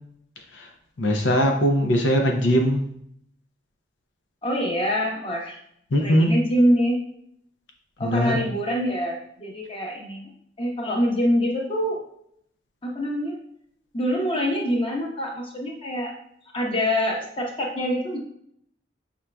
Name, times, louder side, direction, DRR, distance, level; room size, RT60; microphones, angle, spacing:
voice 1, 1.0-2.8 5.9-6.3 8.0-8.4, equal, 80° left, 3 dB, 0.6 m, -20 dB
voice 2, 4.4-5.6 6.0-7.0 8.0-10.2 10.6-12.0 12.8-13.3 13.9-16.1 16.5-18.2, equal, 30° left, -1 dB, 0.9 m, -25 dB
5.8 x 3.7 x 2.2 m, 0.69 s
head